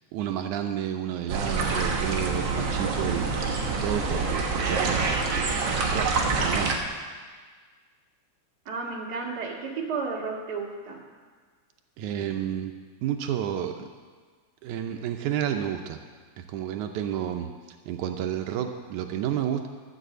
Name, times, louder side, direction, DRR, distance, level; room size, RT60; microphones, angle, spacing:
voice 1, 0.1-5.2 5.9-6.1 6.4-6.7 12.0-12.7 13.0-13.9 14.6-16.0 16.4-17.5 17.9-19.7, right 10 dB, 80° right, 5 dB, 2.1 m, -30 dB
sound 1, 1.3-6.8, right 4 dB, 55° right, 1.4 m, -26 dB
voice 2, 8.7-11.0, right 4 dB, 35° right, -2 dB, 1.9 m, -32 dB
12.5 x 6.9 x 7.9 m, 1.5 s
omnidirectional pair, 3.4 m